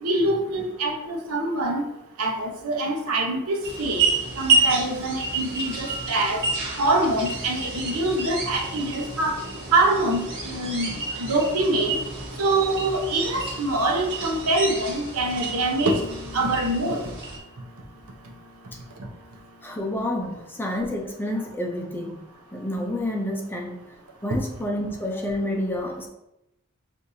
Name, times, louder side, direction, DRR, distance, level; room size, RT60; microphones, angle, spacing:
voice 1, 0.0-1.8 2.2-6.4 6.8-9.3 9.7-10.9 11.2-12.0 12.4-16.0 16.3-17.1, right 2 dB, 75° right, 1 dB, 0.8 m, -24 dB
sound 1, 3.6-17.4, right 3 dB, 55° right, 1.3 m, -29 dB
voice 2, 19.6-22.2 22.5-23.8 24.2-26.1, left 1 dB, 10° left, 0 dB, 0.5 m, -29 dB
6.4 x 2.6 x 2.7 m, 0.88 s
head